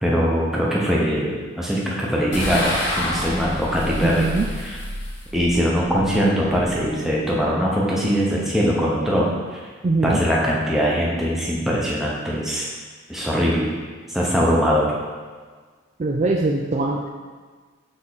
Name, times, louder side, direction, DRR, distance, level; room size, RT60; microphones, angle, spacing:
voice 1, 0.0-4.3 4.6-4.8 5.3-9.6 10.0-12.7 13.1-13.7 14.1-14.9, equal, ahead, -5 dB, 0.9 m, -21 dB
sound 1, 2.3-7.7, left 1 dB, 60° left, 1.1 m, -30 dB
voice 2, 4.0-4.5 9.8-10.2 16.0-17.1, right 3 dB, 35° right, -1 dB, 0.3 m, -22 dB
6.6 x 3.6 x 4.1 m, 1.5 s
head